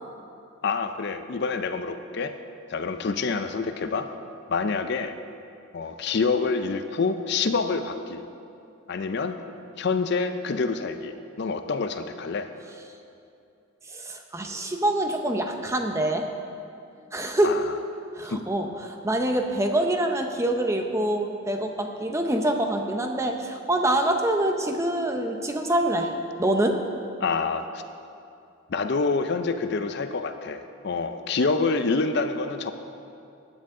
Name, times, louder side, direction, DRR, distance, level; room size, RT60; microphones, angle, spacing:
voice 1, 0.6-2.4 2.7-4.1 4.5-5.1 5.7-8.2 8.9-9.4 9.8-12.5 17.4-17.7 18.3-18.4 27.2-27.6 28.7-32.7, left 4 dB, 50° left, 9 dB, 0.5 m, -27 dB
voice 2, 13.9-16.2 17.1-17.6 18.1-26.1 26.4-26.8, right 1 dB, 15° right, 4 dB, 0.6 m, -25 dB
15.0 x 9.9 x 3.7 m, 2.6 s
head